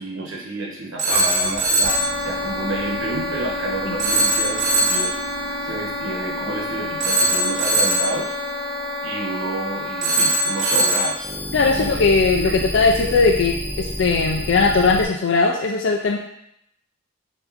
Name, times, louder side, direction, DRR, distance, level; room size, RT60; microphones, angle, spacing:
voice 1, 0.0-8.3 9.0-11.3 11.7-12.1 12.4-12.6, right 2 dB, 80° right, -2 dB, 1.0 m, -30 dB
Telephone, 1.0-2.2 4.0-5.2 7.0-8.2 10.0-11.2, right 2 dB, 35° right, 0.6 m, -20 dB
sound 1, 1.1-15.1, left 1 dB, 10° right, 0.9 m, -29 dB
voice 2, 11.5-16.2, left 4 dB, 65° left, 0 dB, 0.4 m, -19 dB
5.8 x 2.6 x 2.5 m, 0.75 s
head